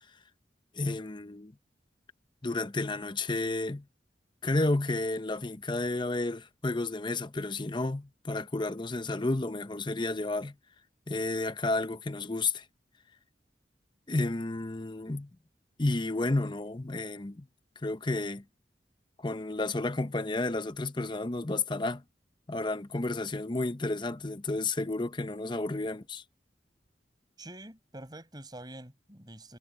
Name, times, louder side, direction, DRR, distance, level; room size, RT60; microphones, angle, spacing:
voice 1, 0.7-1.5 2.4-3.8 4.4-10.5 11.1-12.6 14.1-15.3 15.8-17.5 17.8-18.4 19.2-22.0 22.5-26.2, left 2 dB, 25° left, 0.8 m, -31 dB
voice 2, 27.4-29.6, right 1 dB, 25° right, 6.4 m, -46 dB
head